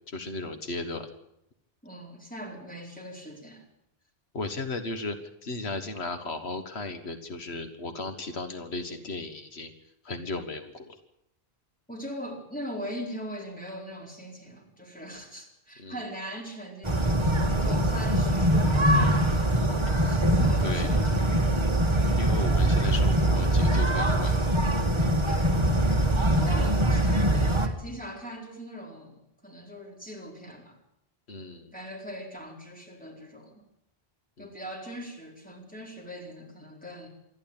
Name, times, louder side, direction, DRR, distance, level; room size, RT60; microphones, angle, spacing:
voice 1, 0.1-1.1 4.3-9.7 10.0-11.0 15.8-16.0 20.6-20.9 22.2-24.4 31.3-31.7 34.4-34.5, left 3 dB, 80° left, 8 dB, 1.8 m, -35 dB
voice 2, 1.8-3.7 11.9-19.5 20.1-21.2 25.2-25.5 26.4-30.8 31.7-33.6 34.4-37.1, equal, 10° left, 0 dB, 4.2 m, -40 dB
sound 1, 16.8-27.7, right 1 dB, 25° right, 1.7 m, -23 dB
27.0 x 11.5 x 8.9 m, 0.81 s
omnidirectional pair, 1.1 m